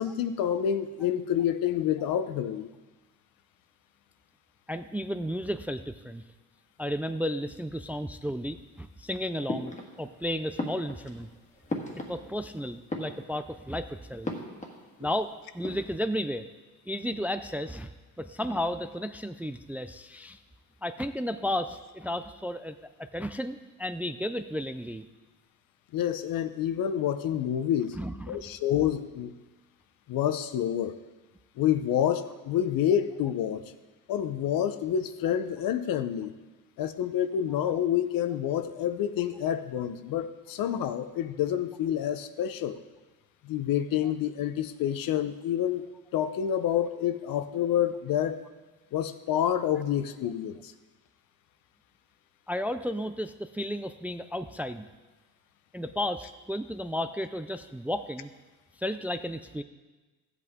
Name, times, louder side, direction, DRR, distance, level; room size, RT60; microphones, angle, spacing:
voice 1, 0.0-2.7 25.9-28.0 28.3-29.3 30.1-31.0 31.6-33.6 34.1-36.3 36.8-42.8 43.4-45.8 46.1-48.4 48.9-50.7, left 10 dB, 70° left, 11 dB, 0.8 m, -28 dB
voice 2, 4.7-6.2 6.8-11.3 12.1-14.3 15.0-16.5 16.9-17.9 18.2-20.4 20.8-25.1 28.0-28.4 52.5-54.9 55.7-58.3 58.8-59.6, equal, 5° right, 10 dB, 0.3 m, -33 dB
sound 1, 9.5-10.2 10.5-12.5 12.8-13.6 14.2-15.2 15.5-16.0, left 2 dB, 20° left, 1.6 m, -37 dB
14.0 x 8.2 x 3.7 m, 1.2 s
cardioid pair, 105°, 35 cm